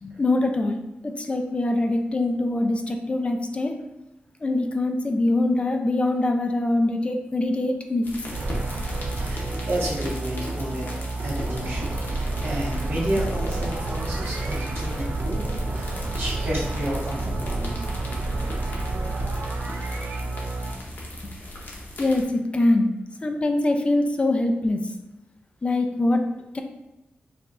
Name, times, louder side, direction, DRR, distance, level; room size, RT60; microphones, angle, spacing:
voice 1, 0.0-0.8 1.0-3.7 4.4-8.1 22.0-22.9 23.2-24.8 25.6-26.2 26.5-26.6, left 2 dB, 30° left, 4 dB, 0.3 m, -23 dB
sound 1, 8.0-22.2, left 1 dB, 60° left, 0.8 m, -38 dB
sound 2, 8.3-20.7, right 2 dB, 60° right, 0.5 m, -29 dB
voice 2, 9.2-10.9 11.2-18.0, right 1 dB, 80° right, -7 dB, 1.4 m, -31 dB
4.6 x 2.3 x 2.5 m, 0.91 s
wide cardioid pair, 105°, 4 cm